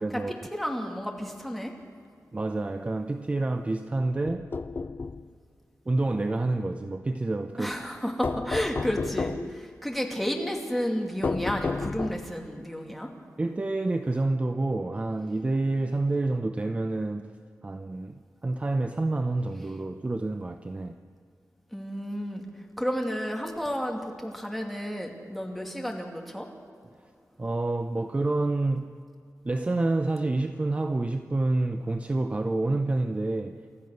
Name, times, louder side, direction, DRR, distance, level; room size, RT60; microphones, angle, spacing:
voice 1, 0.0-0.3 2.3-4.5 5.9-7.7 13.4-17.3 17.6-21.0 27.4-29.0 29.4-33.6, right 2 dB, 25° right, 0.7 m, -28 dB
voice 2, 0.5-1.7 7.6-13.1 21.7-22.4 22.8-26.5, equal, ahead, 2.5 m, -31 dB
sound 1, 4.2-5.2 8.2-9.6 11.2-12.4, left 4 dB, 40° left, 0.6 m, -31 dB
29.5 x 14.0 x 6.6 m
wide cardioid pair, 145°, 6 cm